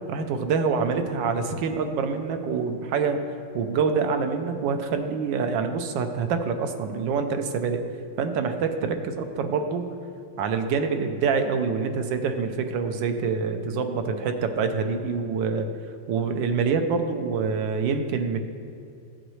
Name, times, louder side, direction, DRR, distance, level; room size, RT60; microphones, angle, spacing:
voice 1, 0.1-3.2 3.5-7.8 8.2-9.9 10.4-15.7 16.1-18.4, right 5 dB, 80° right, 7 dB, 1.4 m, -26 dB
13.0 x 7.9 x 3.1 m, 2.3 s
omnidirectional pair, 2.1 m